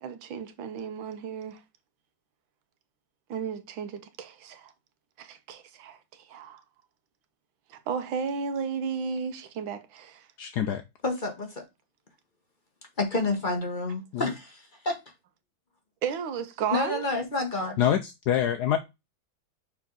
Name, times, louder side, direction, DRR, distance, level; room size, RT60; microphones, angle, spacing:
voice 1, 0.0-1.6 3.3-4.7 5.2-6.6 7.7-10.3 16.0-17.0, right 6 dB, 85° right, 1.7 m, -34 dB
voice 2, 10.4-10.8 14.1-14.3 17.8-18.8, left 10 dB, 70° left, 1.0 m, -25 dB
voice 3, 11.0-11.6 13.0-15.0 16.7-17.8, left 2 dB, 30° left, 1.0 m, -29 dB
6.1 x 4.3 x 3.7 m
omnidirectional pair, 2.1 m